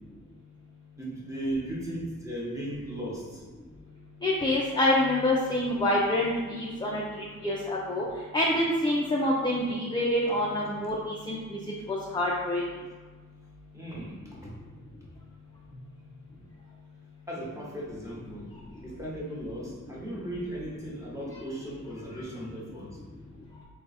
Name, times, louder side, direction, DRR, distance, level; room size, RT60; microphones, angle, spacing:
voice 1, 1.0-3.4 13.7-14.5 15.7-15.9 17.3-18.4 18.8-23.0, right 1 dB, 10° right, -6 dB, 1.2 m, -37 dB
voice 2, 4.2-8.0 8.3-11.6 11.9-12.6, left 1 dB, 15° left, -4 dB, 0.5 m, -27 dB
3.7 x 2.3 x 4.1 m, 1.3 s
cardioid pair, 75°, 34 cm